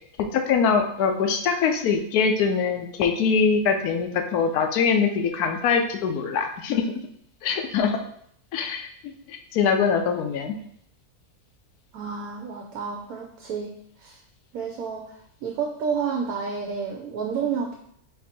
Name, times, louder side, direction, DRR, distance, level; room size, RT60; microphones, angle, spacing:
voice 1, 0.3-6.9 7.4-8.0 8.5-10.5, left 6 dB, 90° left, 5 dB, 1.1 m, -23 dB
voice 2, 11.9-13.7 14.0-14.2 14.5-17.8, right 6 dB, 80° right, 1 dB, 1.1 m, -30 dB
4.5 x 2.7 x 4.2 m, 0.68 s
omnidirectional pair, 1.6 m